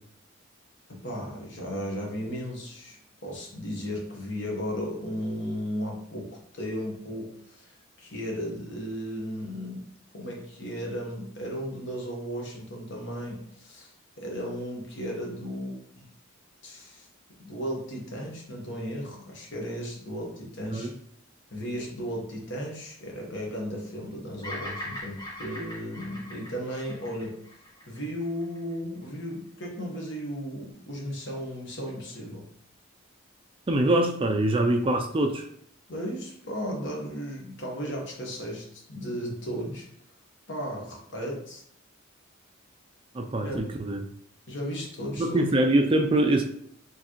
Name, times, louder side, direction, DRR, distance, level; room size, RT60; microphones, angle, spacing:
voice 1, 0.9-9.8 10.1-13.9 14.2-16.1 16.6-17.1 17.4-20.9 21.5-27.4 27.9-32.5 35.9-39.9 40.5-41.6 43.4-43.7 44.5-45.4, equal, 60° left, -1 dB, 1.2 m, -35 dB
Bird vocalization bird call bird song, 24.4-28.7, left 1 dB, 20° left, 1.3 m, -40 dB
voice 2, 33.7-35.5 43.1-44.0 45.2-46.4, right 1 dB, 25° right, 3 dB, 0.4 m, -24 dB
4.7 x 3.2 x 3.0 m, 0.67 s
head